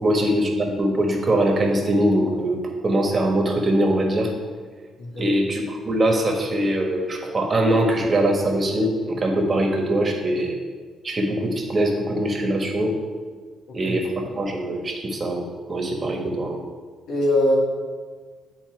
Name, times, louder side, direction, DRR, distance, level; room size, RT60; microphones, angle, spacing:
voice 1, 0.0-4.3 5.2-10.5 11.0-13.0 13.7-16.6, right 1 dB, 35° right, 2 dB, 1.4 m, -22 dB
voice 2, 17.1-17.6, left 1 dB, 75° left, -2 dB, 2.2 m, -21 dB
10.0 x 4.3 x 4.6 m, 1.5 s
cardioid pair, 90°, 0 cm